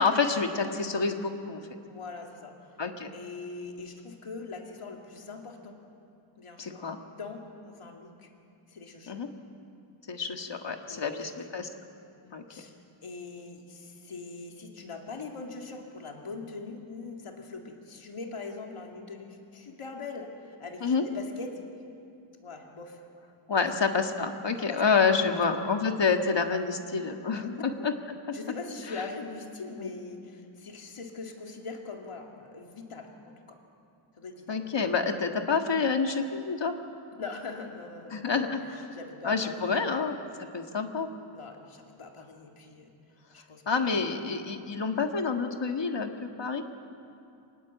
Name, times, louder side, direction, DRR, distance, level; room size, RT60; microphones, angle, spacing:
voice 1, 0.0-1.6 2.8-3.1 6.6-7.0 9.1-9.3 10.1-11.7 12.3-12.5 20.8-21.0 23.5-27.9 29.8-29.9 34.5-36.7 38.1-38.9 39.2-40.1 40.4-41.1 43.7-46.6, left 5 dB, 60° left, 5 dB, 1.8 m, -28 dB
voice 2, 1.9-2.6 3.1-5.8 6.4-8.3 8.7-9.2 10.9-11.5 12.2-12.7 13.0-21.7 22.4-23.0 23.5-23.7 24.6-25.0 25.3-25.4 27.4-27.6 28.3-33.6 34.2-34.5 37.2-38.4 38.9-40.2 41.3-42.9 43.3-44.1, left 4 dB, 80° left, 2 dB, 2.5 m, -42 dB
26.5 x 19.5 x 8.2 m, 2.6 s
wide cardioid pair, 120°, 50 cm